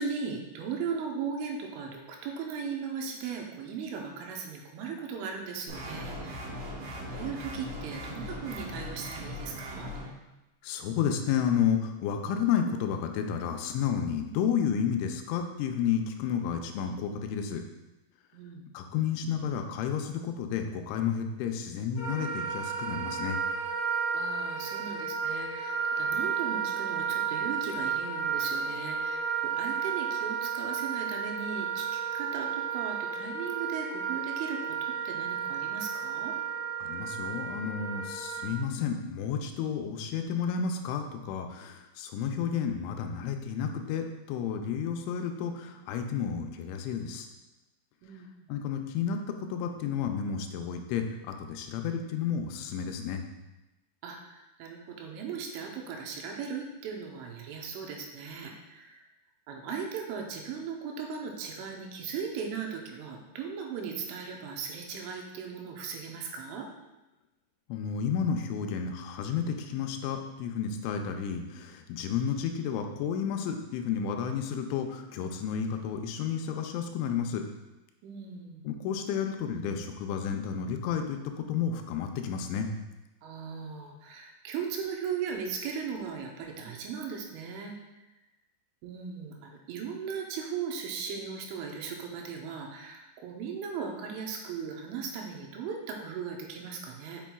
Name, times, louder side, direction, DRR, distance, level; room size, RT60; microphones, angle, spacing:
voice 1, 0.0-6.5 7.0-9.9 18.3-18.6 24.1-29.3 29.6-36.3 48.0-48.3 54.0-59.0 59.5-66.7 78.0-78.6 83.2-87.7 88.8-97.2, right 6 dB, 85° right, 2 dB, 3.3 m, -38 dB
sound 1, 5.7-10.1, equal, 70° right, 3.1 m, -39 dB
voice 2, 10.6-17.6 18.7-23.4 36.8-47.3 48.5-53.2 67.7-77.5 78.7-82.7, left 7 dB, 85° left, 5 dB, 2.9 m, -31 dB
Wind instrument woodwind instrument, 22.0-38.5, right 6 dB, 55° left, 1.9 m, -32 dB
7.2 x 5.8 x 2.3 m, 1.0 s
omnidirectional pair, 5.4 m